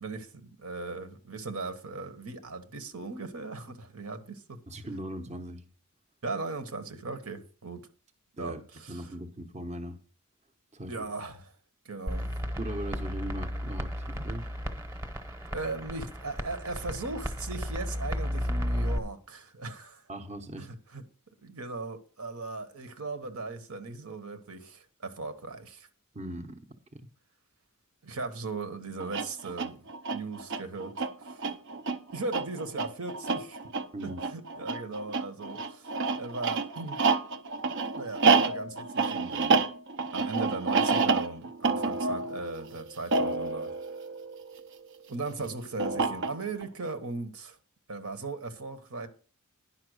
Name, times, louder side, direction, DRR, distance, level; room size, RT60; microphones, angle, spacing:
voice 1, 0.0-4.6 6.2-7.9 8.4-9.1 10.9-11.5 11.8-12.4 15.5-20.0 20.6-21.0 21.4-25.9 28.0-29.8 30.1-31.0 31.2-31.5 32.1-33.6 34.0-35.9 36.2-37.0 37.9-39.6 40.1-43.7 45.1-47.6 47.9-49.1, right 3 dB, 75° right, 1.3 m, -38 dB
voice 2, 4.7-5.6 8.4-8.6 8.9-10.0 10.7-11.0 12.6-14.5 20.1-20.7 26.1-26.7 26.9-27.1 33.9-34.2, right 1 dB, 30° right, 0.9 m, -39 dB
sound 1, 12.1-19.0, equal, 10° right, 1.1 m, -33 dB
sound 2, 29.0-44.8 45.8-46.7, right 4 dB, 55° right, 0.7 m, -29 dB
10.5 x 5.8 x 6.3 m
head